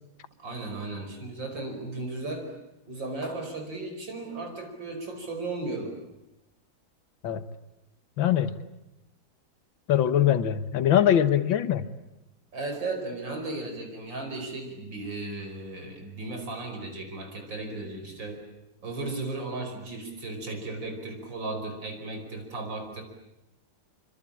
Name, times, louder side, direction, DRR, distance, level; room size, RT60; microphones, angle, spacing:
voice 1, 0.4-2.5 2.9-6.0 12.5-18.4 18.8-23.0, right 2 dB, 70° right, 4 dB, 5.7 m, -35 dB
voice 2, 8.2-8.5 9.9-11.8, left 10 dB, 80° left, 11 dB, 2.0 m, -22 dB
26.5 x 25.0 x 8.7 m, 0.93 s
omnidirectional pair, 2.1 m